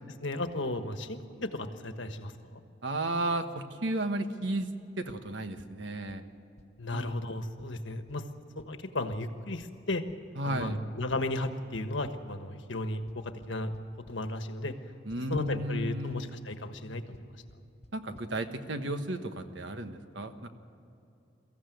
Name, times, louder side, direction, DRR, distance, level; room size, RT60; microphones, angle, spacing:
voice 1, 0.2-2.3 6.8-8.2 8.5-10.0 10.4-13.7 14.1-14.7 15.3-17.3, left 2 dB, 75° left, 8 dB, 1.4 m, -34 dB
voice 2, 2.8-4.7 5.0-6.2 6.9-7.1 10.4-10.8 15.1-16.3 17.9-20.5, right 1 dB, 70° right, 8 dB, 1.3 m, -33 dB
sound 1, 5.1-5.2 5.6-5.7 6.1-6.2 6.6-6.7 7.1-7.2 7.6-7.7 8.1-8.2 8.6-8.7 9.1-9.2 9.6-9.7 10.1-10.2 10.6-10.7 11.1-12.1 13.1-14.2 15.1-15.2 15.5-15.8 16.1-16.2 17.1-17.2 17.5-17.6 17.8-17.9 18.1-18.3, left 1 dB, 35° left, 0.9 m, -53 dB
23.5 x 15.0 x 9.3 m, 2.8 s
head